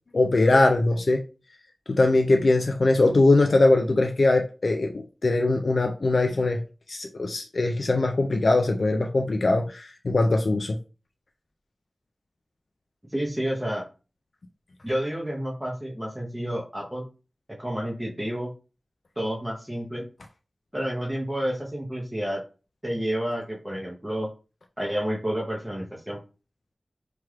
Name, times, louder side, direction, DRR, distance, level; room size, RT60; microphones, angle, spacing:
voice 1, 0.1-1.2 1.9-6.6 6.9-10.8, left 2 dB, 65° left, 3 dB, 0.3 m, -21 dB
voice 2, 13.1-13.8 14.8-17.1 17.6-18.5 19.2-20.1 20.7-22.4 22.8-24.3 24.8-26.2, equal, 10° right, -3 dB, 0.7 m, -30 dB
3.2 x 2.9 x 2.3 m, 0.33 s
wide cardioid pair, 65°, 0 cm